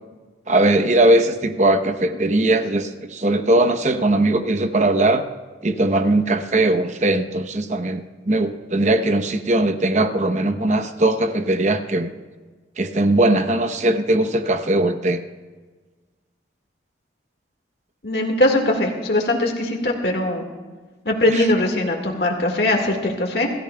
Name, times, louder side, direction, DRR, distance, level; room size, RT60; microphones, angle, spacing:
voice 1, 0.5-5.2 5.6-12.1 12.8-15.2 21.3-21.5, right 2 dB, 40° right, 7 dB, 0.9 m, -19 dB
voice 2, 18.0-20.4 21.1-23.5, left 1 dB, 60° left, 1 dB, 1.9 m, -20 dB
25.5 x 14.5 x 2.3 m, 1.4 s
head